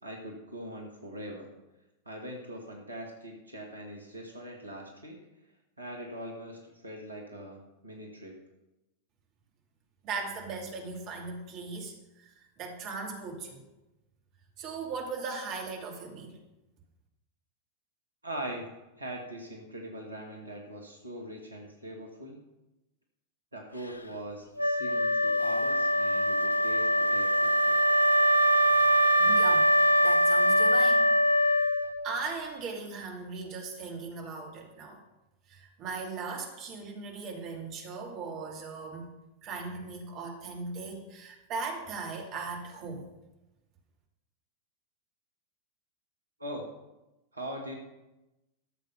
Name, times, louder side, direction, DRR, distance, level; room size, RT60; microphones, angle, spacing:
voice 1, 0.0-1.5 2.1-5.3 5.8-8.4 18.2-18.7 19.0-22.4 23.5-27.8 46.4-46.7 47.3-47.7, right 1 dB, 80° right, 0 dB, 1.8 m, -41 dB
voice 2, 10.0-13.6 14.6-16.4 29.2-31.1 31.5-31.8 32.0-35.0 35.5-39.1 39.4-43.1, right 4 dB, 40° right, 0 dB, 2.6 m, -38 dB
Wind instrument woodwind instrument, 24.6-32.1, equal, 80° left, 0.6 m, -23 dB
13.5 x 7.2 x 5.6 m, 0.98 s
figure-of-eight pair, 90°, 0 cm